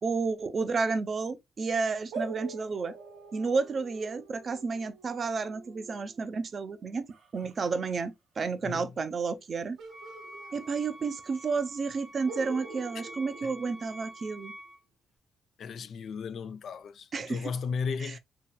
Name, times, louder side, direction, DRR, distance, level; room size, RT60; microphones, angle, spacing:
voice 1, 0.0-2.9 3.3-7.0 7.3-9.8 10.5-14.5 17.1-17.5 18.0-18.2, right 4 dB, 45° right, 0.5 m, -31 dB
sound 1, 2.1-7.5 9.8-11.2 11.5-11.6 12.3-14.4, right 3 dB, 80° right, 1.0 m, -45 dB
voice 2, 8.6-8.9 13.4-13.5 15.6-18.2, left 5 dB, 60° left, 0.4 m, -35 dB
Wind instrument woodwind instrument, 9.9-14.8, right 1 dB, 10° left, 0.8 m, -48 dB
2.9 x 2.8 x 2.2 m
cardioid pair, 90°, 0 cm